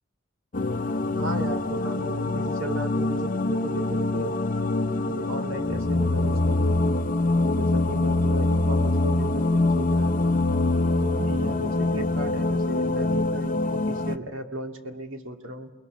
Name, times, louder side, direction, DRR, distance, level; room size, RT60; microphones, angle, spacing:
sound 1, 0.5-14.2, left 2 dB, 45° left, 0.6 m, -24 dB
voice 1, 1.1-4.4 5.1-6.8 7.3-10.4 11.0-15.7, right 1 dB, 85° right, 3 dB, 2.1 m, -36 dB
29.5 x 21.5 x 5.3 m, 1.2 s
head